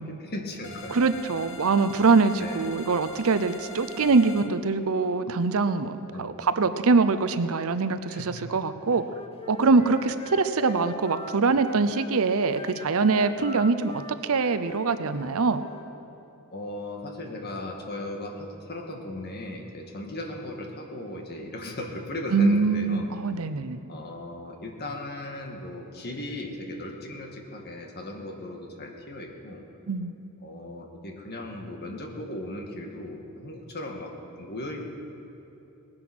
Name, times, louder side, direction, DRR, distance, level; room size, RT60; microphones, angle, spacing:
voice 1, 0.0-1.0 2.4-2.7 6.1-6.4 8.1-8.5 8.9-9.1 10.0-10.1 16.5-23.0 23.9-29.6 30.4-34.1 34.4-34.8, left 1 dB, 45° left, 2 dB, 1.8 m, -37 dB
sound 1, 0.6-4.5, left 3 dB, 65° left, 1.4 m, -43 dB
voice 2, 0.9-9.0 9.5-15.6 22.3-23.8 29.9-30.1, right 4 dB, 65° right, 12 dB, 0.6 m, -23 dB
Wind instrument woodwind instrument, 9.0-12.1 12.5-15.9, equal, 25° left, 1.1 m, -42 dB
19.0 x 9.8 x 6.2 m, 2.9 s
head